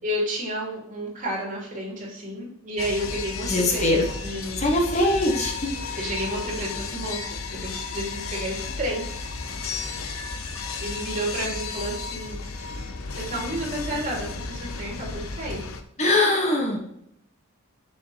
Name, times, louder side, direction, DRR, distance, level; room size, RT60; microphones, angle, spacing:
voice 1, 0.0-4.8 6.0-9.0 10.8-12.4 13.1-15.6, right 1 dB, 40° right, -3 dB, 3.0 m, -31 dB
sound 1, 2.8-15.8, left 4 dB, 80° left, 0.9 m, -33 dB
voice 2, 3.5-4.1 4.6-5.5 6.0-6.1 16.0-16.9, left 1 dB, 35° left, 1 dB, 1.2 m, -22 dB
7.6 x 6.4 x 2.8 m, 0.76 s
head